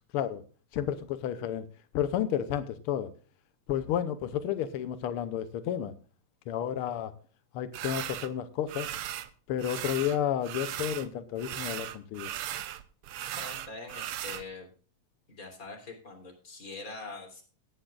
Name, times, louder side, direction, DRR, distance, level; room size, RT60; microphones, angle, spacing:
voice 1, 0.7-1.7 1.9-3.1 3.7-5.9 6.5-7.1 7.5-8.9 9.5-12.3, left 10 dB, 80° left, 1.2 m, -31 dB
sound 1, 7.7-8.3 8.7-9.3 9.6-11.1 11.4-14.4, right 12 dB, 90° right, 1.2 m, -37 dB
voice 2, 13.4-14.7 15.3-17.4, left 3 dB, 30° left, 3.7 m, -43 dB
17.5 x 10.5 x 2.4 m
omnidirectional pair, 3.4 m